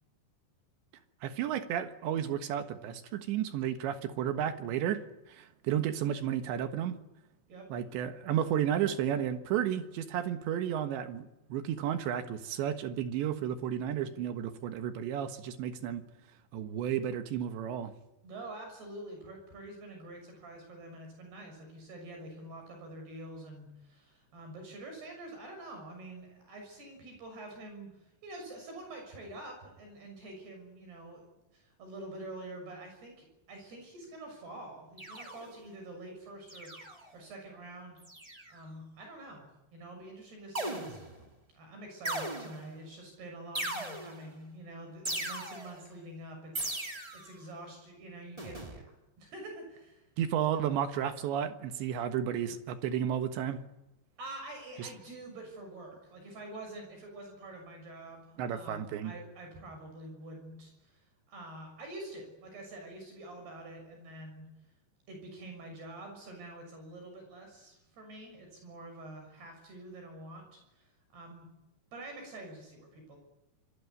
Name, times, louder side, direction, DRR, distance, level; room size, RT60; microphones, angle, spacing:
voice 1, 1.2-5.0 5.3-7.0 7.7-16.0 16.5-17.9 50.2-53.6 54.8-54.9 58.4-59.1, right 9 dB, 80° right, 8 dB, 3.7 m, -32 dB
voice 2, 18.2-38.0 38.5-41.3 41.5-50.0 54.2-64.5 65.1-71.5 71.9-73.2, right 1 dB, 60° right, 3 dB, 8.4 m, -47 dB
sound 1, 35.0-35.7 36.5-37.1 38.0-38.6 40.5-41.2 42.0-42.8 43.5-44.3 45.0-45.8 46.5-47.3 48.4-48.8, right 1 dB, 10° right, 1.7 m, -38 dB
26.5 x 22.5 x 9.6 m, 0.91 s
omnidirectional pair, 5.2 m